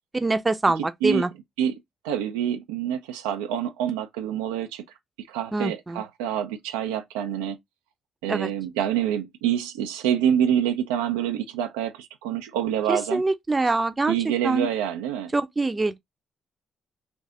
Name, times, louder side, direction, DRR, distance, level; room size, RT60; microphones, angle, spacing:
voice 1, 0.1-1.3 5.5-6.0 8.3-8.5 12.9-14.1 14.4-14.7 15.3-16.0, right 3 dB, 25° right, 0.6 m, -24 dB
voice 2, 2.0-4.8 5.3-7.6 8.2-13.2 14.1-15.3, right 9 dB, 85° right, 0.4 m, -26 dB
3.4 x 2.6 x 3.7 m
hypercardioid pair, 45°, 0 cm